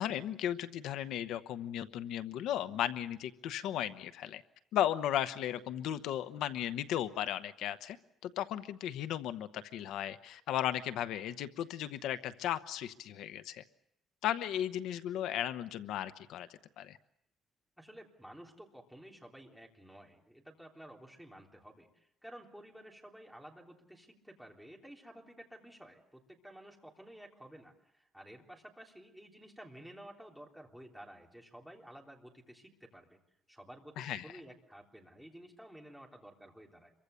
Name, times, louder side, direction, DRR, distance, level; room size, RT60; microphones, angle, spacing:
voice 1, 0.0-4.4 4.7-8.0 8.2-13.6 14.2-16.5 16.8-17.0 34.0-34.3, left 11 dB, 75° left, 12 dB, 0.9 m, -35 dB
voice 2, 17.8-33.2 33.5-36.9, right 1 dB, ahead, 0 dB, 3.3 m, -53 dB
27.0 x 23.5 x 6.9 m, 0.78 s
cardioid pair, 165°, 0 cm